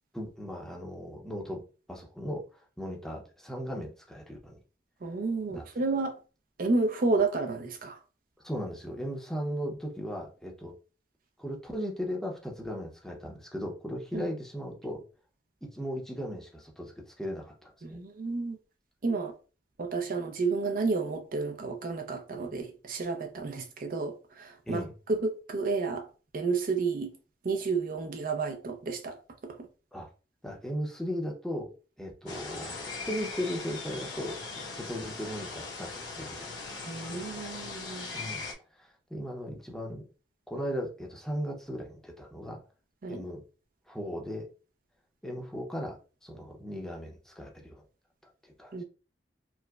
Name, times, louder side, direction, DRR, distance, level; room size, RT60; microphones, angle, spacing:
voice 1, 0.1-1.6 1.9-4.6 5.5-5.6 8.4-10.7 11.4-15.0 15.6-18.0 24.7-24.9 29.9-30.1 30.4-31.7 32.0-34.4 34.7-37.2 38.1-38.4 38.7-40.0 40.5-42.6 43.1-43.4 43.9-44.5 45.2-47.8 48.2-48.7, equal, 5° left, 0.6 m, -37 dB
voice 2, 5.0-6.1 6.6-8.0 14.1-14.3 17.8-18.6 19.0-19.3 19.8-26.1 26.3-27.1 27.4-29.7 36.9-38.1 43.0-43.2 48.7-48.8, right 3 dB, 50° right, 0.5 m, -31 dB
sound 1, 32.3-38.5, left 3 dB, 80° left, 0.9 m, -40 dB
4.6 x 2.0 x 2.3 m
head